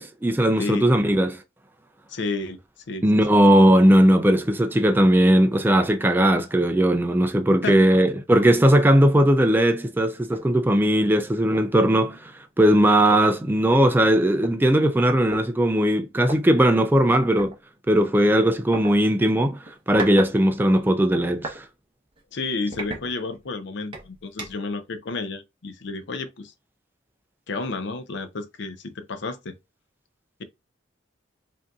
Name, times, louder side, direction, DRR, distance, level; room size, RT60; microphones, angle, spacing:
voice 1, 0.0-1.4 3.0-12.3 12.6-17.5 17.9-19.6 19.9-21.6, right 1 dB, 10° right, 0.4 m, -18 dB
voice 2, 2.1-2.6 2.9-3.1 7.6-7.8 22.3-26.5 27.5-29.5, left 3 dB, 65° left, 0.6 m, -31 dB
sound 1, 10.3-10.5 11.0-11.1 11.5-11.8 12.8-12.9 13.1-14.5 15.3-15.4 16.2-16.4 17.4-17.5 18.7-18.9 19.6-20.3 20.6-21.6 22.1-22.2 22.7-23.5 23.9-24.7, right 1 dB, 25° right, 0.9 m, -35 dB
5.2 x 2.7 x 2.3 m
head